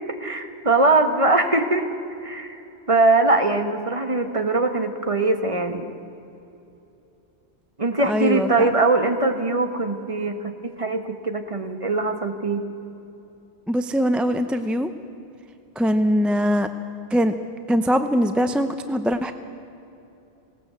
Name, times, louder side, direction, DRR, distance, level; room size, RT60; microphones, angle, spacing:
voice 1, 0.0-1.9 2.2-2.6 2.9-5.9 7.8-12.6, right 2 dB, 30° right, 7 dB, 1.3 m, -22 dB
voice 2, 8.0-8.7 13.7-14.9 15.8-16.7 17.1-17.3 17.7-19.3, equal, ahead, 9 dB, 0.5 m, -22 dB
19.5 x 18.0 x 8.1 m, 2.8 s
omnidirectional pair, 1.1 m